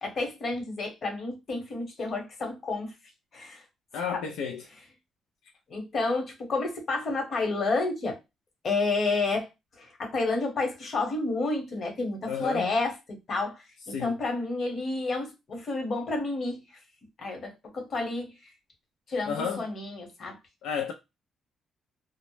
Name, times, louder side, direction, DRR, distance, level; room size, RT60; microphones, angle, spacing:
voice 1, 0.0-2.9 3.3-3.6 4.1-4.2 5.7-8.2 8.6-9.5 9.8-13.0 13.3-16.6 17.2-18.3 19.1-20.4, left 3 dB, 50° left, 1.0 m, -30 dB
voice 2, 3.9-4.6 12.3-12.7 13.9-14.2 19.3-19.7 20.6-20.9, left 7 dB, 85° left, 0.3 m, -31 dB
2.0 x 2.0 x 3.0 m
cardioid pair, 90°, 0 cm